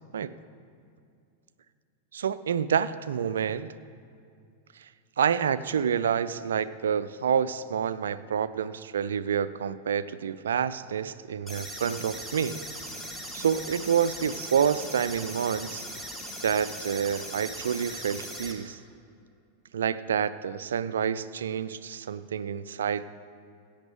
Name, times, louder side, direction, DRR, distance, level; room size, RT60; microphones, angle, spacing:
voice 1, 2.1-3.7 4.8-4.9 5.2-12.6 13.3-15.9 16.4-18.8 19.7-23.0, right 7 dB, 65° right, 15 dB, 0.4 m, -28 dB
sound 1, 11.5-18.5, equal, 5° left, 1.6 m, -39 dB
15.5 x 8.7 x 4.9 m, 2.4 s
figure-of-eight pair, 90°, 0 cm